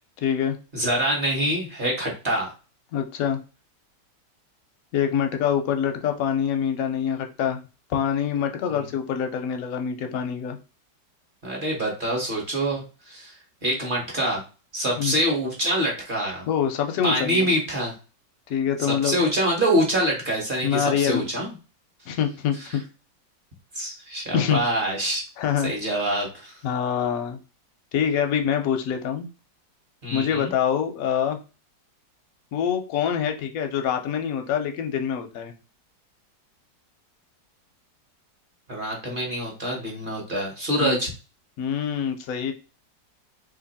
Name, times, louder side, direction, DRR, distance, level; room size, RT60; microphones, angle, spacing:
voice 1, 0.2-0.6 2.9-3.4 4.9-7.6 7.9-10.6 15.0-15.1 16.5-17.5 18.5-19.3 20.6-21.3 22.1-22.8 24.3-24.6 25.4-25.7 26.6-27.4 27.9-29.3 30.1-31.4 32.5-35.5 40.8-41.0 41.6-42.5, left 8 dB, 70° left, 5 dB, 0.9 m, -25 dB
voice 2, 0.7-2.5 11.4-13.3 13.6-14.4 14.7-16.5 17.0-17.9 19.0-21.5 23.7-25.2 25.6-26.5 30.0-30.5 38.7-41.1, right 1 dB, 35° right, -1 dB, 1.0 m, -25 dB
2.9 x 2.6 x 4.0 m, 0.32 s
omnidirectional pair, 2.0 m